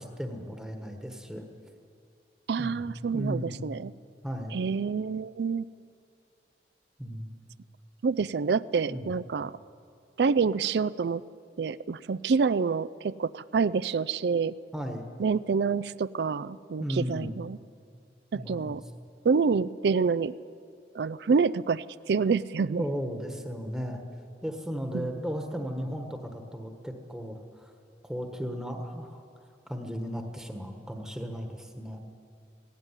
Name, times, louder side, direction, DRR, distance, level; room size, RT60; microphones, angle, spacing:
voice 1, 0.0-1.4 2.6-2.8 3.1-3.5 4.2-4.6 7.0-7.3 8.9-9.1 14.7-15.1 16.8-17.3 18.3-18.8 22.8-24.0 24.4-27.7 28.0-29.2 29.7-32.0, equal, 5° right, 4 dB, 1.3 m, -35 dB
voice 2, 2.5-3.9 4.5-5.7 8.0-9.5 10.2-11.2 11.6-14.5 15.2-17.6 18.3-18.8 19.2-20.3 20.9-22.9 24.9-25.2, right 5 dB, 70° right, 17 dB, 0.4 m, -27 dB
17.5 x 16.5 x 9.8 m, 2.4 s
head